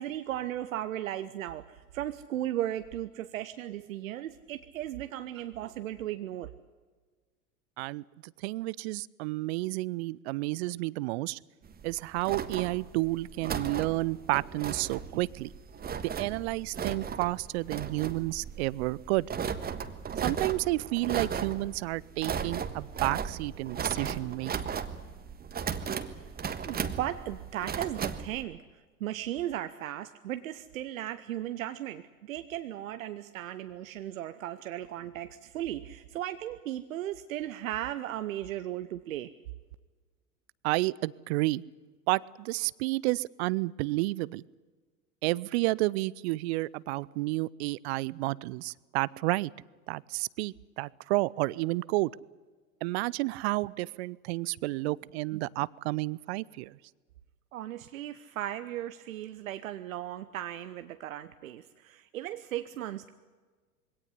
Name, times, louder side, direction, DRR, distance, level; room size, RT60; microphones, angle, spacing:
voice 1, 0.0-6.5 26.6-28.6 29.0-39.3 57.5-63.1, right 12 dB, 65° right, 11 dB, 1.0 m, -36 dB
voice 2, 8.4-11.4 11.8-15.5 16.0-19.3 20.2-24.8 40.6-41.6 42.1-44.4 45.2-49.5 49.9-52.1 52.8-56.8, right 20 dB, 45° right, 23 dB, 0.6 m, -31 dB
sound 1, 11.7-28.4, right 7 dB, 20° right, 1.4 m, -36 dB
22.5 x 17.5 x 9.8 m, 1.4 s
figure-of-eight pair, 85°, 44 cm